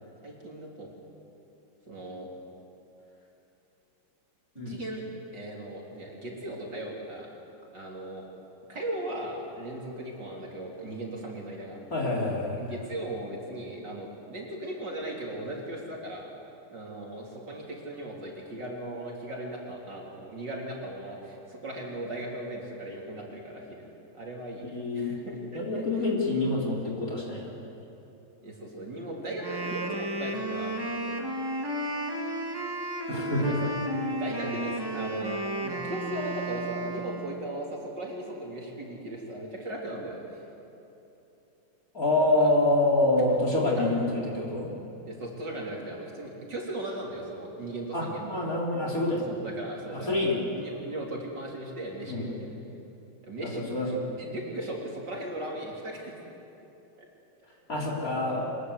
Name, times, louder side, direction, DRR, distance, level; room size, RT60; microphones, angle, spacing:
voice 1, 0.2-0.9 1.9-2.3 4.6-5.0 5.3-7.3 7.7-8.3 8.7-11.8 12.6-16.3 16.7-23.9 24.1-24.7 24.9-26.0 28.4-31.2 33.3-33.8 34.1-40.4 42.4-42.5 43.7-43.9 45.1-48.4 49.3-52.5 53.2-56.1, right 1 dB, 50° right, -2 dB, 4.1 m, -37 dB
voice 2, 11.9-12.6 24.6-25.1 25.5-27.5 33.1-33.6 34.4-34.5 41.9-44.7 47.9-49.3 49.9-50.4 52.1-52.4 53.4-54.0 57.7-58.5, left 2 dB, 40° left, -2 dB, 4.0 m, -26 dB
Wind instrument woodwind instrument, 29.3-37.4, right 1 dB, 10° right, 1.7 m, -33 dB
25.0 x 20.5 x 8.2 m, 2.9 s
omnidirectional pair, 2.4 m